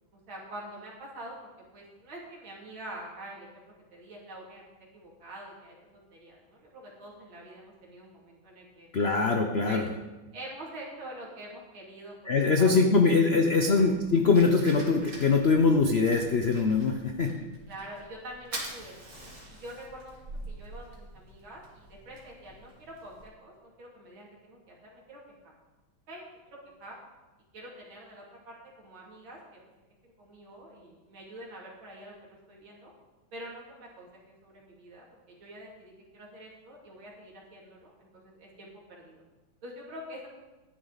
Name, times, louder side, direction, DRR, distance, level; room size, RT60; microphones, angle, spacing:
voice 1, 0.1-4.6 4.9-8.9 9.6-9.8 10.3-13.9 17.7-19.1 19.5-25.4 26.1-26.3 26.8-27.0 27.5-29.6 30.0-32.9 33.3-39.2 39.6-40.3, right 1 dB, 70° right, -3 dB, 3.4 m, -46 dB
voice 2, 8.9-9.8 12.3-17.3, left 4 dB, 90° left, 4 dB, 0.5 m, -23 dB
Fire, 13.5-23.2, right 2 dB, 40° right, 2.6 m, -46 dB
12.5 x 10.0 x 4.0 m, 1.1 s
omnidirectional pair, 2.2 m